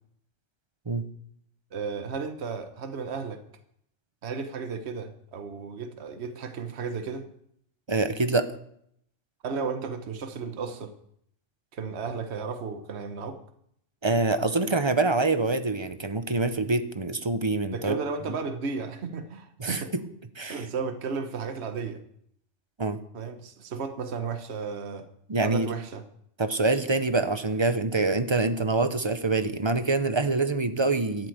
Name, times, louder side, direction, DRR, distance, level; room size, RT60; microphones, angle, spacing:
voice 1, 1.7-3.4 4.2-7.3 9.4-10.9 11.7-13.4 17.7-19.9 20.5-22.0 23.1-25.1 25.4-26.0, right 5 dB, 60° right, 8 dB, 1.3 m, -34 dB
voice 2, 7.9-8.5 14.0-18.0 19.6-20.0 20.4-20.6 22.8-23.0 25.3-25.7 26.4-31.3, right 3 dB, 25° right, 10 dB, 0.8 m, -25 dB
13.0 x 7.9 x 7.9 m, 0.71 s
omnidirectional pair, 1.3 m